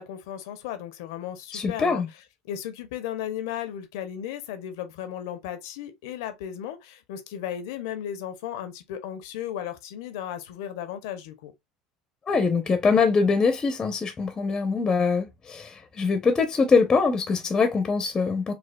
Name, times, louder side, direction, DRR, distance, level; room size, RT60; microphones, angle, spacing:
voice 1, 0.0-11.5, left 10 dB, 80° left, 0.6 m, -35 dB
voice 2, 1.5-2.1 12.3-18.5, left 4 dB, 25° left, 0.6 m, -23 dB
4.2 x 2.3 x 2.2 m
supercardioid pair, 90°, 2 cm